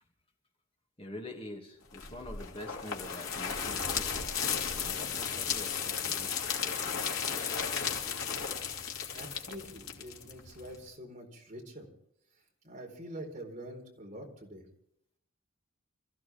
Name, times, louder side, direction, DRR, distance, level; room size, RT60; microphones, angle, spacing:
voice 1, 1.0-4.3 4.9-7.6, left 1 dB, 25° left, 1 dB, 2.3 m, -46 dB
sound 1, 1.9-10.8, left 7 dB, 85° left, 2.7 m, -35 dB
voice 2, 9.1-11.9 12.6-14.7, right 1 dB, 35° right, 0 dB, 4.2 m, -45 dB
27.5 x 15.0 x 3.6 m, 0.73 s
head